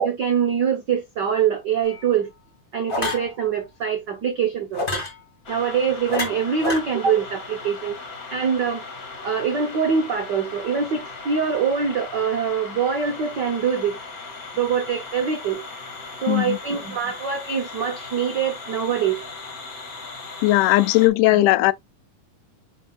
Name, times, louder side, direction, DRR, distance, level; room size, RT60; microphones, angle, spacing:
voice 1, 0.0-2.3 2.7-5.0 5.5-8.0 8.3-8.8 9.2-14.0 14.5-15.6 16.2-19.3 21.3-21.4, right 7 dB, 75° right, 0.9 m, -24 dB
sound 1, 1.8-2.1 2.9-3.3 4.7-5.1 6.1-6.8, left 3 dB, 20° left, 1.9 m, -27 dB
sound 2, 5.4-21.1, left 4 dB, 35° left, 1.7 m, -38 dB
voice 2, 16.3-16.6 20.4-21.7, left 18 dB, 80° left, 2.0 m, -17 dB
9.9 x 4.1 x 2.4 m
omnidirectional pair, 3.7 m